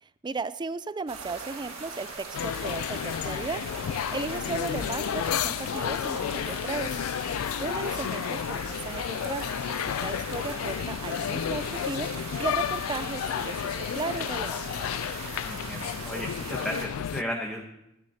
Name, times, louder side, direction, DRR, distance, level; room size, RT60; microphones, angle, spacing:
voice 1, 0.0-3.6 4.1-7.0 7.6-14.8, right 4 dB, 20° right, 14 dB, 0.4 m, -35 dB
sound 1, 1.1-16.9, right 5 dB, 80° right, 1.7 m, -40 dB
sound 2, 1.3-17.0, left 4 dB, 60° left, 3.0 m, -50 dB
sound 3, 2.3-17.2, left 9 dB, 80° left, 0.3 m, -32 dB
voice 2, 15.4-17.7, equal, 5° left, 0 dB, 1.0 m, -34 dB
26.5 x 9.7 x 2.8 m, 0.88 s
head